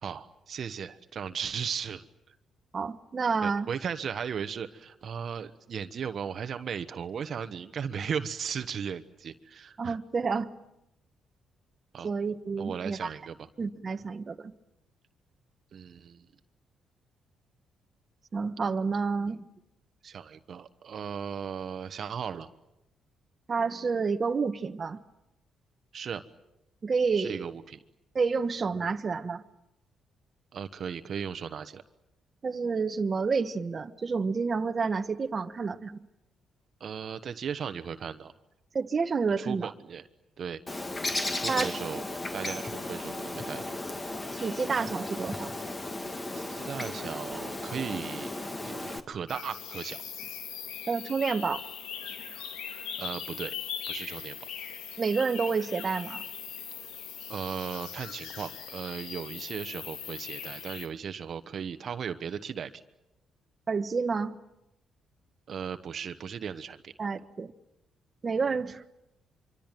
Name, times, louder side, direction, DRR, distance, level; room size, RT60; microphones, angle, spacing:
voice 1, 0.0-2.0 3.4-10.0 11.9-12.1 12.6-13.3 15.7-16.2 20.0-22.5 25.9-26.2 27.1-27.8 30.5-31.8 36.8-38.3 39.4-40.0 40.4-40.6 41.3-42.0 42.3-43.7 46.3-50.0 53.0-53.5 53.9-54.4 57.3-62.8 65.5-66.9, right 7 dB, 55° right, 1.2 m, -36 dB
voice 2, 2.7-3.7 9.8-10.5 12.0-13.1 13.6-14.5 18.3-19.4 23.5-25.0 26.8-27.5 28.1-29.4 32.4-36.0 38.7-39.7 41.5-41.8 44.4-45.5 50.9-51.6 55.0-56.2 63.7-64.3 67.0-67.5 68.2-68.8, right 5 dB, 40° right, 1.2 m, -29 dB
Bird, 40.7-49.0, left 2 dB, 25° left, 2.3 m, -35 dB
sound 1, 49.3-60.9, left 8 dB, 90° left, 2.1 m, -40 dB
25.0 x 24.5 x 9.1 m
cardioid pair, 90°, 0 cm